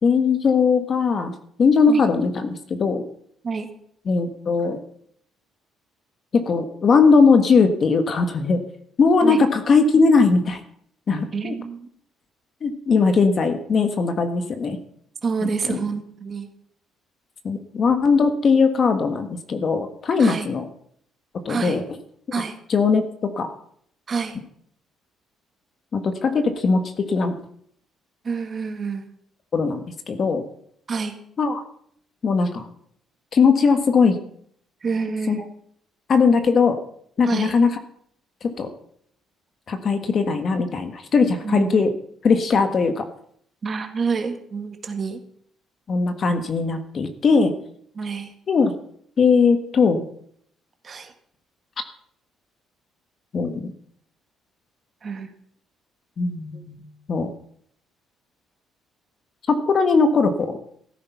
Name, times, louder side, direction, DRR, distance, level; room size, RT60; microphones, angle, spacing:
voice 1, 0.0-1.3 1.6-2.5 2.8-3.0 4.1-4.8 6.3-8.6 9.0-10.6 11.1-11.5 12.6-14.8 15.7-15.8 17.4-20.6 21.4-21.8 22.7-23.5 25.9-27.3 29.5-30.4 31.4-31.6 32.2-32.7 33.3-34.2 35.3-35.4 36.1-36.8 37.2-37.7 38.4-38.7 39.7-41.9 42.2-43.1 45.9-47.5 48.5-48.7 49.2-50.0 53.3-53.7 56.2-57.3 59.5-60.6, left 4 dB, 35° left, 8 dB, 1.5 m, -19 dB
voice 2, 11.3-11.9 15.2-16.5 20.2-20.5 21.5-21.8 22.3-22.6 24.1-24.4 28.2-29.0 30.9-31.2 34.8-35.5 37.2-37.6 41.4-41.8 43.6-45.2 48.0-48.3 50.8-51.1 55.0-55.3 56.5-56.6, right 5 dB, 30° right, 6 dB, 1.9 m, -27 dB
15.0 x 13.5 x 5.8 m, 0.66 s
cardioid pair, 165°, 0 cm